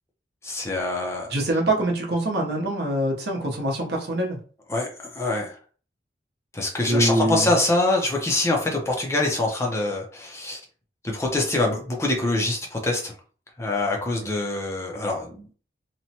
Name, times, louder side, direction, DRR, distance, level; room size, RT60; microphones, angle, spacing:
voice 1, 0.4-1.3 4.7-5.5 6.5-10.6 11.0-13.1 13.6-15.4, left 2 dB, 15° left, 0 dB, 0.5 m, -25 dB
voice 2, 1.3-4.4 6.9-7.5, right 1 dB, 65° right, 0 dB, 0.8 m, -24 dB
2.9 x 2.1 x 2.7 m, 0.41 s
head